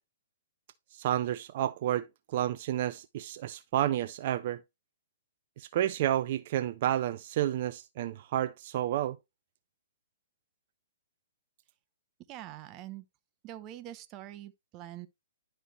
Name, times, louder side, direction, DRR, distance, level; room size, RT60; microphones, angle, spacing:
voice 1, 0.9-4.6 5.6-9.2, right 12 dB, 45° right, 0.4 m, -30 dB
voice 2, 12.3-13.0 13.4-15.1, right 13 dB, 30° right, 0.8 m, -44 dB
11.0 x 4.4 x 3.1 m
figure-of-eight pair, 120°, 0 cm